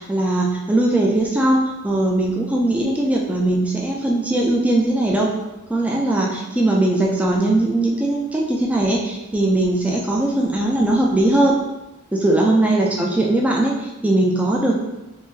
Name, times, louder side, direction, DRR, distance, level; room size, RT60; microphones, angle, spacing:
voice 1, 0.0-5.3 5.7-11.6 12.1-14.7, right 1 dB, 5° right, -2 dB, 0.3 m, -19 dB
3.7 x 2.6 x 2.7 m, 1.0 s
head